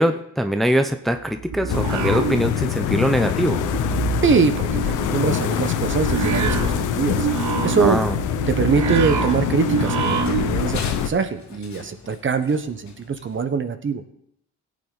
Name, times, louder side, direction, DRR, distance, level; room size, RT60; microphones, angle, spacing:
voice 1, 0.0-3.6 7.8-8.1, equal, ahead, 7 dB, 0.7 m, -22 dB
sound 1, 1.3-2.9 3.2-10.7, right 7 dB, 70° right, 1.2 m, -27 dB
sound 2, 1.7-11.1, left 10 dB, 85° left, 1.0 m, -24 dB
voice 2, 4.2-7.3 7.6-8.0 8.5-14.0, right 5 dB, 40° right, 9 dB, 1.3 m, -23 dB
Run, 8.3-13.4, left 5 dB, 65° left, 2.3 m, -41 dB
17.0 x 8.7 x 4.2 m, 0.71 s
cardioid pair, 90°, 30 cm